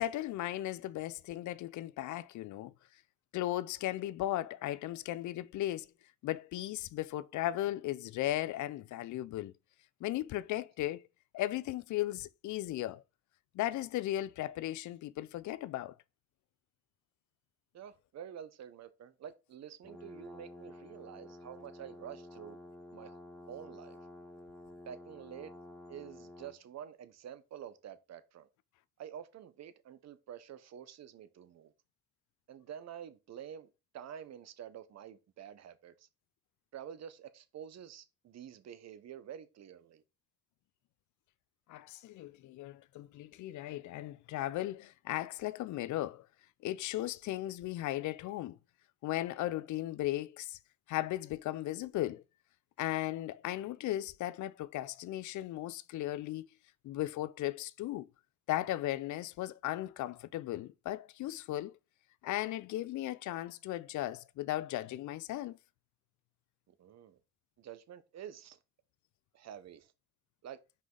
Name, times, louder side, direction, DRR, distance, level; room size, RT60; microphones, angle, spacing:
voice 1, 0.0-2.7 3.3-5.9 6.2-9.5 10.0-11.1 11.3-13.0 13.5-15.9 41.7-46.3 46.6-48.6 49.0-50.6 50.9-52.2 52.8-56.5 56.8-58.1 58.5-61.8 62.2-65.6, left 14 dB, 75° left, 0.5 m, -36 dB
voice 2, 17.7-22.6 22.9-23.2 23.5-24.0 24.9-25.5 25.9-28.5 29.0-31.7 32.5-33.7 33.9-36.1 36.7-40.0 66.7-67.2 67.6-68.6 69.3-69.9 70.4-70.6, right 9 dB, 60° right, 0.9 m, -48 dB
sound 1, 19.8-26.6, left 1 dB, 5° left, 1.5 m, -51 dB
5.7 x 4.9 x 3.9 m
cardioid pair, 90°, 30 cm